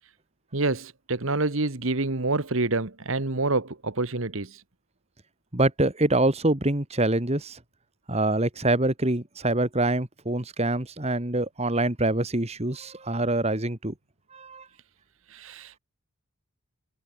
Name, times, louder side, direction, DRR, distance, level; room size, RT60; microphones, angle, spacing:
voice 1, 0.5-4.6 15.3-15.8, right 2 dB, 60° right, 1.5 m, -27 dB
voice 2, 5.5-7.6 8.1-13.9 14.3-14.6, right 2 dB, 30° right, 2.1 m, -25 dB
head